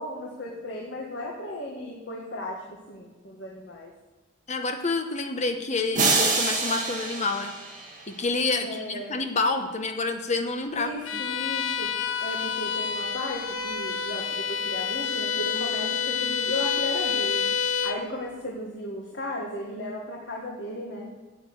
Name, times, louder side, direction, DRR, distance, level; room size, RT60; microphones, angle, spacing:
voice 1, 0.0-3.9 8.6-9.1 10.7-11.9 12.2-17.5 17.8-21.1, left 1 dB, 65° left, -2 dB, 1.6 m, -35 dB
voice 2, 4.5-7.5 8.1-11.2, left 3 dB, 35° left, 5 dB, 1.1 m, -28 dB
sound 1, 5.9-8.3, right 3 dB, 40° right, 2.0 m, -26 dB
Bowed string instrument, 11.0-18.1, left 6 dB, 90° left, 0.7 m, -28 dB
8.4 x 8.2 x 7.8 m, 1.2 s
head